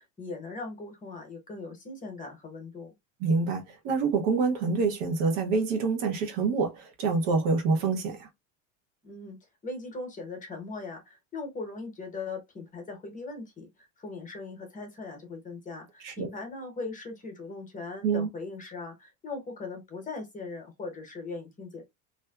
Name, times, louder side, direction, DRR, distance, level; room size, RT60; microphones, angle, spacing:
voice 1, 0.0-3.0 9.0-9.4 9.6-21.8, left 3 dB, 20° left, 0.8 m, -39 dB
voice 2, 3.2-8.3 16.0-16.3 18.0-18.3, right 4 dB, 70° right, 0.9 m, -26 dB
2.6 x 2.2 x 2.2 m
supercardioid pair, 125°, 39 cm